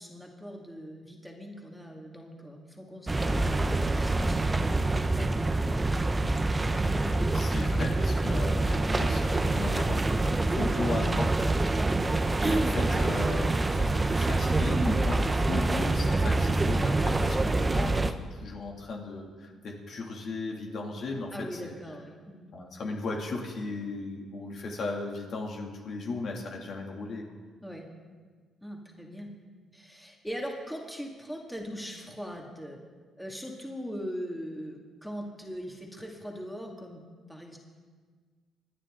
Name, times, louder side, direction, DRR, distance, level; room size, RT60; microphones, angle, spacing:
voice 1, 0.0-4.9 5.1-5.9 6.2-6.6 21.3-22.5 27.6-27.8 28.6-29.3 29.7-32.8 33.2-37.0 37.3-37.6, equal, ahead, 0 dB, 2.1 m, -41 dB
sound 1, 3.1-18.1, right 2 dB, 20° right, 0.7 m, -26 dB
voice 2, 7.3-11.4 11.9-12.1 12.4-21.7 22.5-27.2, left 3 dB, 60° left, 0 dB, 2.5 m, -36 dB
26.5 x 10.0 x 3.8 m, 1.5 s
cardioid pair, 90°, 0 cm